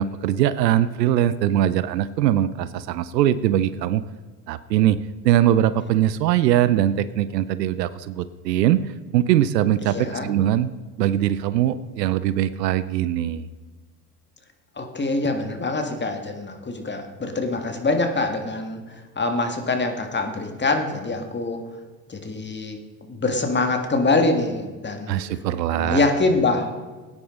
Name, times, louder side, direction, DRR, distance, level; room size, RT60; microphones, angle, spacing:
voice 1, 0.0-4.0 4.5-5.0 5.2-10.7 11.0-13.5 25.1-26.0, right 12 dB, 85° right, 15 dB, 0.6 m, -21 dB
voice 2, 9.8-10.3 14.8-21.6 22.1-22.8 23.1-25.2 25.7-26.7, left 3 dB, 20° left, 5 dB, 2.0 m, -24 dB
18.0 x 9.7 x 3.8 m, 1.4 s
hypercardioid pair, 70°, 48 cm